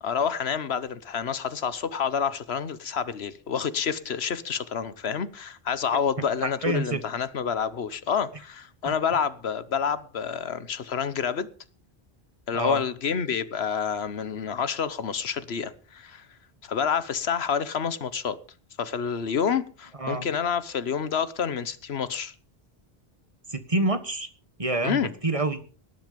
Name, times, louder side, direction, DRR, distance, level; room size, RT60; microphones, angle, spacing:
voice 1, 0.0-11.5 12.5-16.3 16.6-18.4 18.8-22.3 24.8-25.1, left 7 dB, 80° left, 1.3 m, -28 dB
voice 2, 6.6-7.0 8.8-8.9 12.5-12.8 20.0-20.3 23.5-24.3 24.6-25.6, right 2 dB, 35° right, 1.5 m, -27 dB
19.0 x 10.5 x 5.2 m
omnidirectional pair, 1.0 m